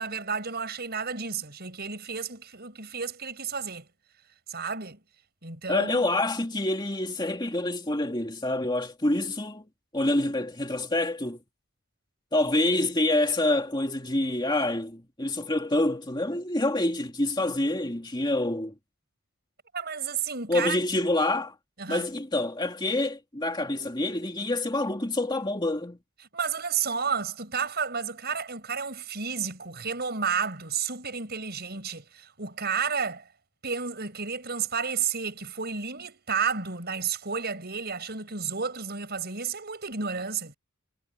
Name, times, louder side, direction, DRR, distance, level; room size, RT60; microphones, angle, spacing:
voice 1, 0.0-3.9 4.5-5.0 5.4-6.1 19.7-20.8 21.8-22.0 26.3-33.2 33.6-40.5, right 6 dB, 50° right, 7.2 m, -31 dB
voice 2, 5.7-9.7 9.9-11.4 12.3-18.7 20.5-21.5 21.9-26.0, left 1 dB, 20° left, 2.4 m, -27 dB
head